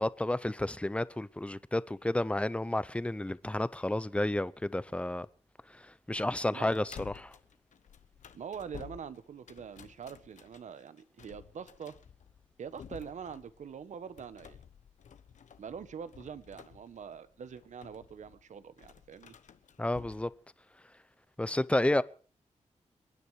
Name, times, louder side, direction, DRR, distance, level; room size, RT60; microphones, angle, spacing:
voice 1, 0.0-5.3 5.7-7.3 19.8-20.3 21.4-22.0, left 1 dB, 10° left, 0.7 m, -31 dB
sound 1, 6.1-20.4, left 8 dB, 80° left, 1.2 m, -53 dB
voice 2, 8.3-12.0 12.6-14.6 15.6-19.4, right 7 dB, 80° right, 1.1 m, -44 dB
28.5 x 9.8 x 4.8 m
wide cardioid pair, 100°, 12 cm